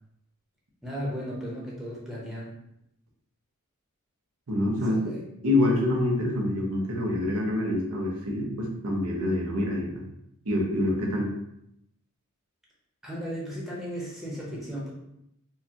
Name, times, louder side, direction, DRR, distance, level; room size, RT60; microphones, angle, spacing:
voice 1, 0.8-2.5 4.8-5.2 13.0-14.9, equal, ahead, -5 dB, 1.0 m, -35 dB
voice 2, 4.5-5.1 5.4-10.0 10.4-11.3, left 1 dB, 90° right, -1 dB, 0.8 m, -26 dB
4.6 x 2.3 x 2.8 m, 0.78 s
head